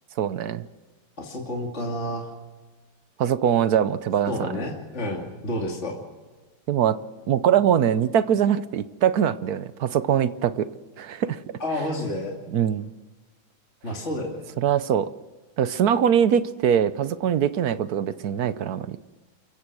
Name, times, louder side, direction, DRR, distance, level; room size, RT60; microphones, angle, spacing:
voice 1, 0.2-0.7 3.2-4.5 6.7-7.0 7.3-10.7 11.0-11.4 12.5-12.9 14.6-15.1 15.6-19.0, right 9 dB, 60° right, 14 dB, 1.1 m, -22 dB
voice 2, 1.2-2.3 4.3-6.0 11.6-12.3 13.8-14.4, left 1 dB, 35° left, -1 dB, 2.9 m, -30 dB
28.5 x 15.5 x 6.2 m, 1.3 s
omnidirectional pair, 2.2 m